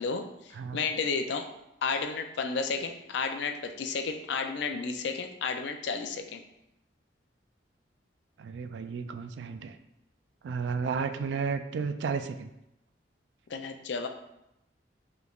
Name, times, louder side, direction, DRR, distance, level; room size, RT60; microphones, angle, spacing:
voice 1, 0.0-1.5 1.8-6.4 13.5-14.1, left 5 dB, 75° left, 7 dB, 0.4 m, -32 dB
voice 2, 8.4-9.8 10.4-12.5, right 5 dB, 75° right, 9 dB, 0.3 m, -33 dB
5.0 x 3.2 x 2.4 m, 0.86 s
head